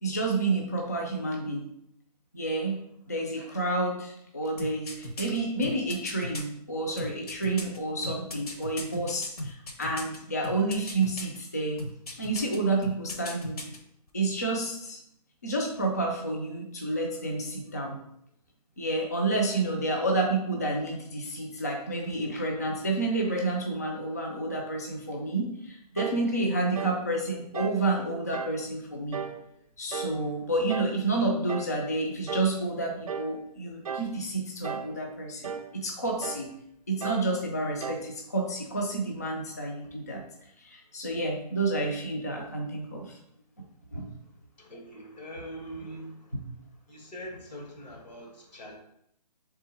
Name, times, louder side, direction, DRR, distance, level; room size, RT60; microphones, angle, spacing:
voice 1, 0.0-1.7 2.3-2.8 3.1-11.8 12.2-13.6 14.1-15.0 15.4-18.0 18.8-29.2 29.8-36.5 36.9-40.2 40.6-43.2 43.9-44.1 46.3-46.4, right 2 dB, 25° left, 0 dB, 0.3 m, -30 dB
sound 1, 4.6-6.4 7.0-10.2 10.4-11.4 11.8-12.6 12.8-13.8 14.1-14.2, left 1 dB, 65° left, 0.9 m, -37 dB
sound 2, 26.0-26.3 26.7-27.0 27.5-27.8 28.3-28.6 29.1-29.4 29.9-30.2 30.7-31.0 31.5-31.8 32.3-32.6 33.1-33.4 33.8-34.2 34.6-35.0 35.4-35.7 36.2-36.5 37.0-37.3 37.8-38.1, right 6 dB, 60° right, 0.4 m, -36 dB
voice 2, 44.6-46.3 46.9-48.7, equal, 90° left, 0 dB, 1.6 m, -43 dB
3.5 x 3.5 x 4.2 m, 0.74 s
hypercardioid pair, 175°, 21 cm